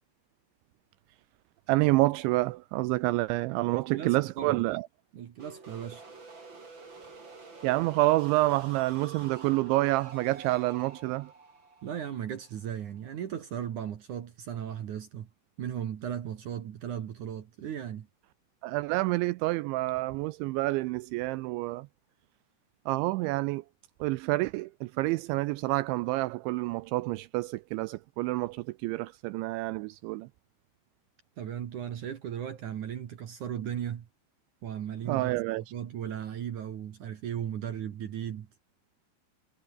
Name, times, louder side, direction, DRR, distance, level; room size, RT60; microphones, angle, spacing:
voice 1, 1.7-4.9 7.6-11.3 18.6-21.9 22.9-23.6 24.0-30.3 35.1-35.6, right 20 dB, 85° right, 2.7 m, -28 dB
voice 2, 3.9-4.6 5.1-6.0 11.8-15.3 15.6-18.1 31.4-34.1 34.6-38.5, right 9 dB, 60° right, 2.1 m, -36 dB
sound 1, 5.4-13.1, right 3 dB, 25° right, 4.5 m, -49 dB
omnidirectional pair, 5.7 m